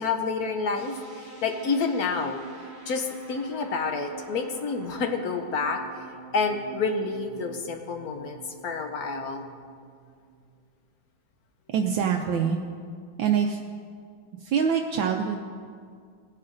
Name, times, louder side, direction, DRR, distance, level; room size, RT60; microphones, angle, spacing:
voice 1, 0.0-2.4 2.9-6.0 6.3-9.4, left 4 dB, 65° left, 5 dB, 0.9 m, -29 dB
sound 1, 0.8-10.6, right 4 dB, 25° right, 2.0 m, -46 dB
voice 2, 11.7-12.6 13.2-13.6 14.4-15.4, right 7 dB, 75° right, 3 dB, 1.3 m, -24 dB
18.0 x 9.8 x 2.6 m, 2.1 s
omnidirectional pair, 2.2 m